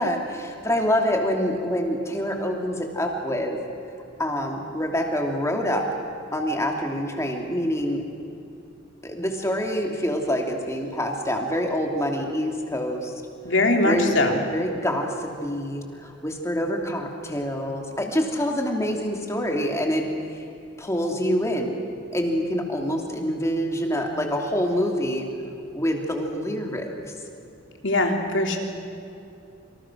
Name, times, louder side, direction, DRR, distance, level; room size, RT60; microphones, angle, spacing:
voice 1, 0.0-3.6 4.2-5.8 6.3-8.0 9.0-13.1 13.8-14.2 14.5-20.0 20.8-21.7 22.1-25.3 25.7-26.9, equal, 15° left, 2 dB, 3.0 m, -26 dB
voice 2, 13.5-14.4 27.8-28.6, left 2 dB, 65° left, 2 dB, 3.4 m, -21 dB
27.5 x 26.5 x 6.4 m, 2.7 s
head